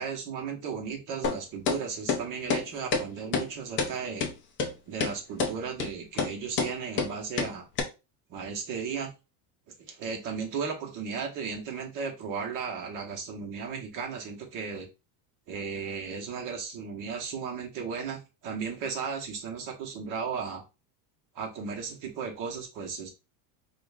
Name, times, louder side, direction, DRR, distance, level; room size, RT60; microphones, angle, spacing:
voice 1, 0.0-4.2 4.9-7.7 8.3-9.1 9.8-14.9 15.5-20.6 21.3-23.1, right 6 dB, 40° right, 2 dB, 1.0 m, -35 dB
sound 1, 1.2-1.4 1.7-1.8 2.1-2.2 2.5-2.6 2.9-3.0 3.3-3.5 3.8-3.9 4.2-4.3 4.6-4.7 5.0-5.1 5.4-5.5 5.8-5.9 6.2-6.3 6.6-6.7 7.0-7.1 7.4-7.5 7.8-7.9, left 5 dB, 25° left, 0.4 m, -27 dB
4.9 x 2.5 x 2.3 m, 0.28 s
cardioid pair, 145°, 49 cm